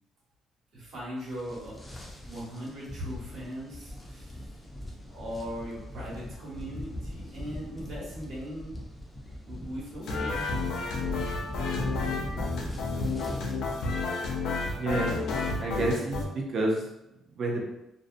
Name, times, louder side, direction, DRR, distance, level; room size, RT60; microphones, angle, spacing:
voice 1, 0.7-1.7 2.3-4.5 5.1-8.8 9.5-10.4, equal, 65° right, -8 dB, 1.1 m, -39 dB
sound 1, 1.2-13.6, left 1 dB, 10° left, 0.4 m, -41 dB
sound 2, 10.0-16.2, left 3 dB, 75° left, 0.4 m, -31 dB
voice 2, 14.8-15.1 15.6-16.9 17.4-17.6, right 2 dB, 45° right, -1 dB, 0.5 m, -29 dB
2.5 x 2.0 x 2.5 m, 0.89 s
cardioid pair, 155°, 0 cm